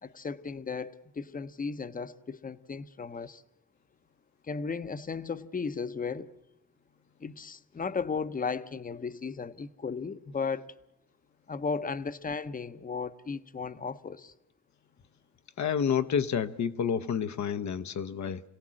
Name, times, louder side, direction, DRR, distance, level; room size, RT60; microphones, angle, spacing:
voice 1, 0.0-3.4 4.4-6.3 7.2-10.7 11.5-14.3, left 5 dB, 25° left, 0.8 m, -35 dB
voice 2, 15.6-18.4, left 7 dB, 60° left, 0.8 m, -29 dB
27.0 x 17.5 x 7.5 m
wide cardioid pair, 125°, 32 cm